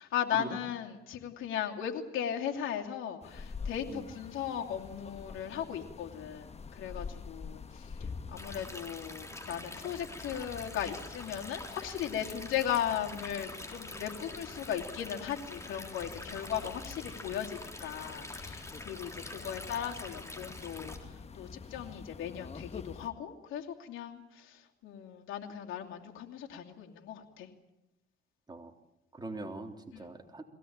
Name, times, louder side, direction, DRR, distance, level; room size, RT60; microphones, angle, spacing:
voice 1, 0.0-27.5 29.9-30.1, left 9 dB, 85° left, 2 dB, 2.8 m, -37 dB
sound 1, 3.2-23.1, left 5 dB, 35° left, 1.2 m, -47 dB
Stream, 8.4-21.0, left 2 dB, 15° left, 3.7 m, -46 dB
voice 2, 29.1-30.4, right 2 dB, 20° right, 4 dB, 3.4 m, -42 dB
22.5 x 17.5 x 8.8 m, 0.92 s
cardioid pair, 90°, 20 cm